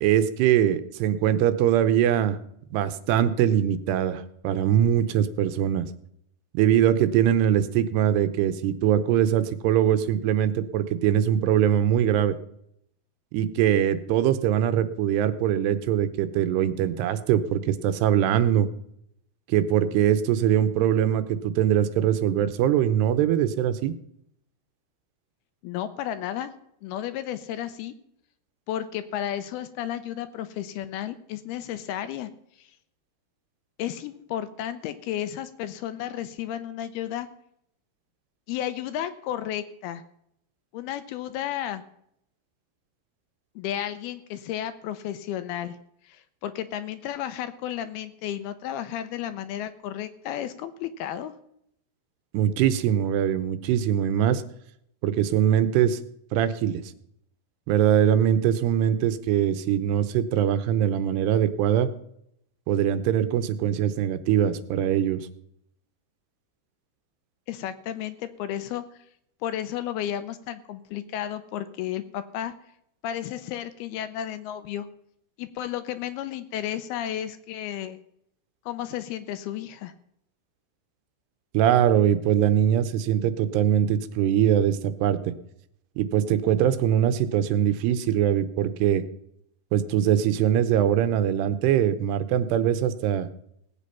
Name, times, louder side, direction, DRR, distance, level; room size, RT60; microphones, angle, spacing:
voice 1, 0.0-2.4 2.7-5.9 6.5-12.4 13.3-18.7 19.5-23.9 52.3-54.4 55.0-56.0 56.3-56.8 57.7-61.9 62.7-65.2 81.5-85.3 86.0-89.0 89.7-93.3, right 10 dB, 85° right, 11 dB, 2.8 m, -22 dB
voice 2, 25.6-26.5 26.8-27.9 28.7-32.3 32.6-32.7 33.8-37.3 38.5-40.0 40.7-41.8 43.6-45.8 46.0-51.3 67.5-68.8 69.4-72.5 73.0-74.9 75.4-78.0 78.7-79.9, left 11 dB, 80° left, 11 dB, 2.5 m, -33 dB
18.0 x 8.4 x 5.7 m, 0.73 s
omnidirectional pair, 4.8 m